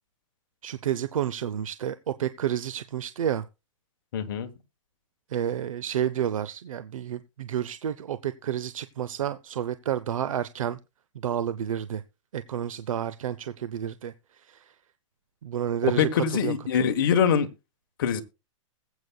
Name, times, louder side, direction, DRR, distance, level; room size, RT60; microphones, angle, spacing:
voice 1, 0.6-3.4 5.3-10.8 11.2-12.0 12.3-14.1 14.5-14.6 15.4-16.5 16.8-16.9, right 10 dB, 85° right, 0.7 m, -30 dB
voice 2, 4.1-4.5 16.0-17.5 18.0-18.2, left 8 dB, 40° left, 1.2 m, -23 dB
20.5 x 8.3 x 2.3 m
hypercardioid pair, 175°, 17 cm